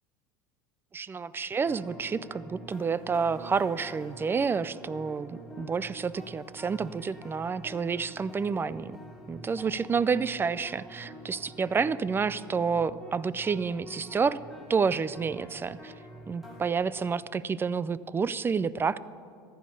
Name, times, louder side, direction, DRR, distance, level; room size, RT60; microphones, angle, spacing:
voice 1, 0.9-8.9 9.3-14.4 14.7-15.9 16.3-19.0, right 5 dB, 20° right, 18 dB, 0.4 m, -29 dB
sound 1, 1.6-16.7, equal, ahead, 2.5 m, -47 dB
14.5 x 10.0 x 5.4 m, 2.5 s
supercardioid pair, 100°, 11 cm